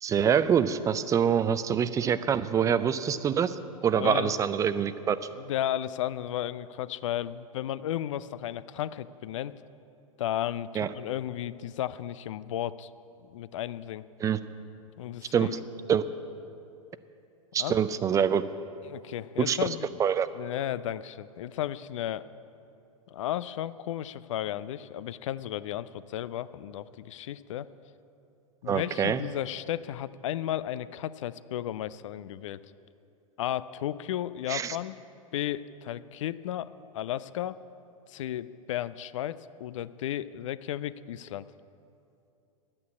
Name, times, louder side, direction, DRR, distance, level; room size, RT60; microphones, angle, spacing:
voice 1, 0.0-5.2 10.7-10.9 14.2-14.4 15.3-15.6 15.9-16.0 17.5-18.4 19.5-19.7 20.0-20.3 28.7-29.2 34.5-34.8, right 8 dB, 20° right, 14 dB, 0.4 m, -25 dB
voice 2, 3.9-4.4 5.4-9.6 10.2-12.9 13.3-14.0 15.0-15.5 17.6-17.8 18.9-19.9 20.4-22.3 23.1-27.7 28.6-32.6 33.4-35.0 35.3-37.6 38.1-41.5, left 12 dB, 60° left, 16 dB, 0.5 m, -34 dB
11.0 x 8.7 x 8.4 m, 2.6 s
figure-of-eight pair, 95°, 18 cm